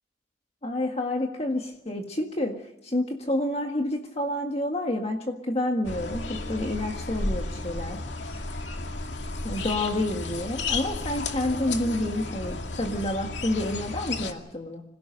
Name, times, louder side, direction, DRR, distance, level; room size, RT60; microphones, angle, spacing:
voice 1, 0.6-2.6 2.8-8.0 9.4-14.8, left 1 dB, 35° left, 3 dB, 1.8 m, -29 dB
sound 1, 5.8-14.3, left 3 dB, 75° left, 2.3 m, -33 dB
27.0 x 16.5 x 6.6 m, 0.87 s
head